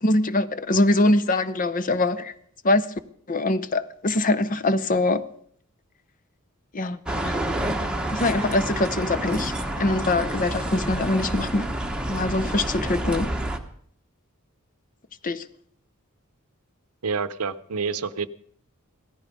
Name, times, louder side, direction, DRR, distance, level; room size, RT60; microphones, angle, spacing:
voice 1, 0.0-2.3 2.6-2.9 3.3-5.2 6.7-7.4 8.1-11.7 12.1-13.3 15.2-15.4, left 2 dB, 35° left, 0.7 m, -23 dB
sound 1, 7.1-13.6, right 1 dB, 5° right, 1.1 m, -28 dB
voice 2, 17.0-18.3, right 5 dB, 75° right, 0.8 m, -28 dB
17.0 x 14.0 x 5.3 m
head